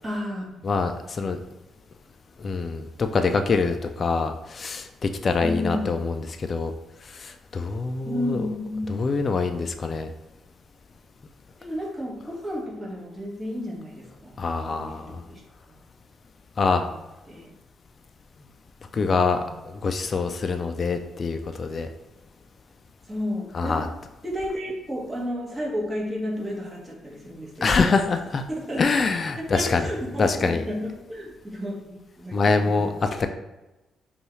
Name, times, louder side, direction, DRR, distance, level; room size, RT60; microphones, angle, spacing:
voice 1, 0.0-0.7 3.2-3.4 5.4-5.9 8.0-8.9 11.6-15.4 16.6-17.0 17.3-17.5 23.1-23.8 24.2-27.9 28.5-28.8 29.4-32.9, equal, 20° right, -3 dB, 1.3 m, -32 dB
voice 2, 0.6-1.4 2.4-6.7 7.0-8.5 8.9-10.1 14.4-15.2 16.6-16.8 18.9-21.9 23.5-23.9 27.6-28.4 28.8-29.9 30.2-30.6 32.3-33.3, left 4 dB, 40° left, 6 dB, 0.3 m, -25 dB
5.3 x 2.3 x 3.1 m, 1.0 s
cardioid pair, 90°, 0 cm